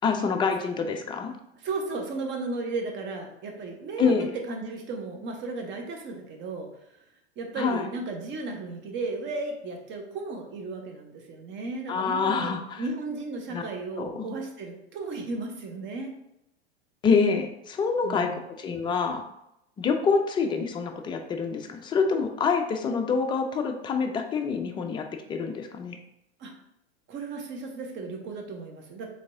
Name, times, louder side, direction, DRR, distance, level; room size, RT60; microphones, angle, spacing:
voice 1, 0.0-1.3 4.0-4.3 7.6-7.9 11.9-12.8 13.5-13.6 14.0-14.3 17.0-19.2 19.8-26.0, left 5 dB, 15° left, 5 dB, 0.4 m, -26 dB
voice 2, 1.5-4.1 4.5-6.7 7.4-16.1 18.0-18.5 26.4-26.5 27.1-29.1, right 3 dB, 35° right, 3 dB, 0.9 m, -35 dB
4.5 x 3.5 x 2.6 m, 0.83 s
hypercardioid pair, 90°, 33 cm